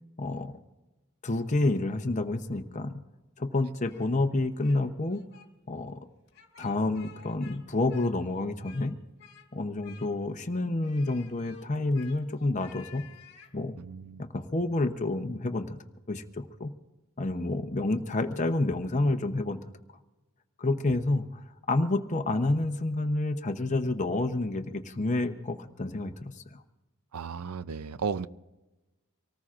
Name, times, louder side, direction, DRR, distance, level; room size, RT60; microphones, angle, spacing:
voice 1, 0.2-0.6 1.2-3.0 3.4-5.2 5.7-6.1 6.6-9.0 9.5-13.0 13.5-13.8 14.2-15.8 16.1-16.7 17.2-19.7 20.6-26.6, left 2 dB, 35° left, 7 dB, 0.8 m, -29 dB
Speech, 3.8-4.8 5.1-5.5 6.3-7.6 7.9-8.9 9.2-9.5 9.8-10.4 10.8-13.5, left 7 dB, 50° left, 1.9 m, -53 dB
voice 2, 13.8-14.2 27.1-28.3, right 5 dB, 80° right, 15 dB, 0.5 m, -34 dB
25.5 x 18.5 x 2.5 m, 1.1 s
head